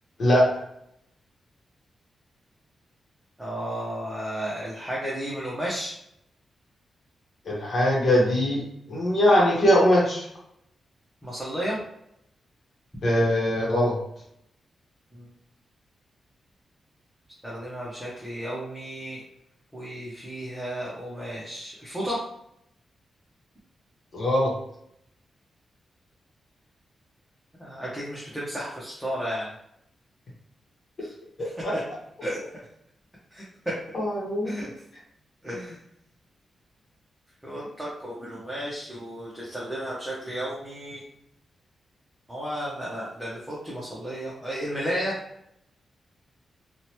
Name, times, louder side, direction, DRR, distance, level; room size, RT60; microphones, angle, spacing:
voice 1, 3.4-5.9 11.2-11.8 15.1-15.3 17.4-19.2 19.7-22.2 27.6-29.5 31.0-31.1 31.7-31.8 32.2-32.4 33.3-33.4 34.4-34.7 35.4-35.8 37.4-41.0 42.3-45.2, equal, 5° right, -7 dB, 0.7 m, -33 dB
voice 2, 7.4-8.6 8.9-10.3 13.0-13.9 24.1-24.5 31.4-31.7 33.9-34.5, equal, 55° left, -4 dB, 1.0 m, -21 dB
2.8 x 2.2 x 2.9 m, 0.75 s
wide cardioid pair, 120°, 0 cm